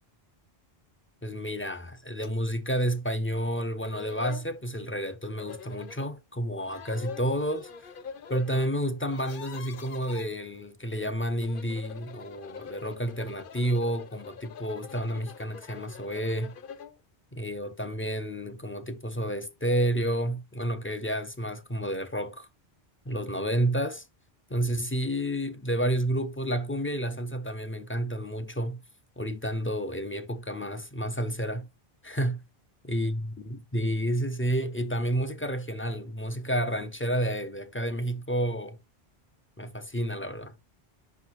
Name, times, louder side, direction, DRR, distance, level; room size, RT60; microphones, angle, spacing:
voice 1, 1.2-7.7 8.3-16.5 17.3-22.5 23.1-24.0 24.5-28.8 29.2-31.7 32.0-32.4 32.9-38.8 39.6-40.5, right 1 dB, 20° left, 0.3 m, -30 dB
sound 1, 2.2-2.3 2.8-2.9 3.5-3.6 3.8-4.5 5.4-6.1 6.6-8.7 9.0-10.3 11.3-17.0, left 7 dB, 65° left, 0.7 m, -44 dB
5.7 x 5.5 x 2.9 m
omnidirectional pair, 1.1 m